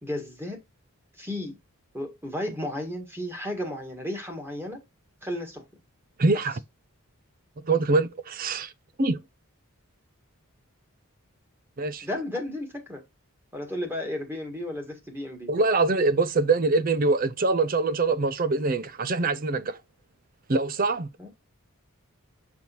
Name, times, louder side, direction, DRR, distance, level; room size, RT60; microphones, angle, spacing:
voice 1, 0.0-0.6 1.2-1.6 1.9-4.8 5.2-5.6 6.3-6.4 12.0-13.0 13.5-15.5 21.2-21.3, left 1 dB, 10° right, 1.7 m, -33 dB
voice 2, 6.2-6.6 7.6-8.7 9.0-9.2 11.8-12.1 15.5-19.8 20.5-21.1, right 3 dB, 40° right, 0.5 m, -24 dB
6.2 x 5.4 x 2.9 m
head